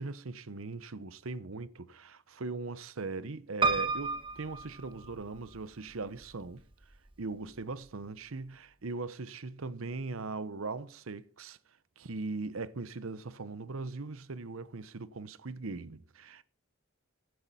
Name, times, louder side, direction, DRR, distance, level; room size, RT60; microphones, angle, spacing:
voice 1, 0.0-6.6 7.2-11.6 12.0-16.4, right 3 dB, 75° right, 0.8 m, -40 dB
Piano, 3.6-5.6 6.2-6.9 7.3-7.4 7.6-7.7, right 4 dB, 25° right, 1.2 m, -32 dB
15.5 x 9.5 x 4.2 m
head